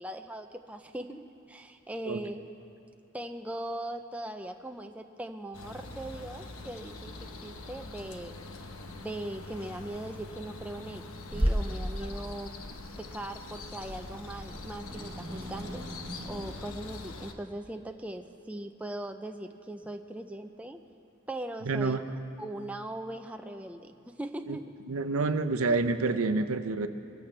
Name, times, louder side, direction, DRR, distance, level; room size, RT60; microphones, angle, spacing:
voice 1, 0.0-2.4 3.1-8.4 8.9-12.6 13.0-15.8 16.2-20.8 21.3-24.7, right 1 dB, 5° right, 6 dB, 0.4 m, -40 dB
sound 1, 5.5-17.3, left 3 dB, 85° left, 1.0 m, -44 dB
Growling / Hiss, 11.3-16.5, equal, 25° right, 1.1 m, -35 dB
voice 2, 21.7-22.0 24.5-24.6 24.9-26.9, right 3 dB, 85° right, 9 dB, 0.7 m, -28 dB
23.5 x 14.5 x 3.3 m, 2.6 s
head